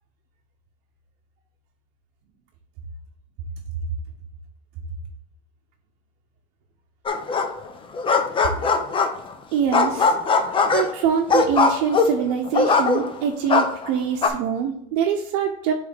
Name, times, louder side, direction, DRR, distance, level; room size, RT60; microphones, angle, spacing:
sound 1, 7.1-7.7 7.9-9.3 9.7-13.2 13.5-14.3, left 4 dB, 25° left, 0.7 m, -20 dB
voice 1, 9.5-15.7, right 8 dB, 70° right, 1 dB, 0.8 m, -24 dB
8.1 x 3.3 x 3.5 m, 0.73 s
supercardioid pair, 115°, 20 cm